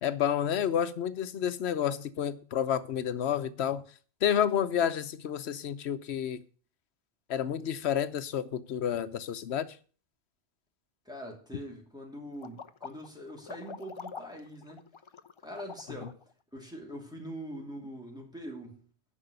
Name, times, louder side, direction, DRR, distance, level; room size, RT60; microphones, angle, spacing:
voice 1, 0.0-3.8 4.2-6.4 7.3-9.8 16.0-16.1, left 9 dB, 90° left, 1.0 m, -30 dB
voice 2, 11.0-14.9 15.4-16.2 16.5-18.8, equal, 5° right, 2.7 m, -43 dB
sound 1, 12.4-16.2, left 5 dB, 35° left, 0.5 m, -45 dB
9.9 x 6.1 x 7.9 m
omnidirectional pair, 1.1 m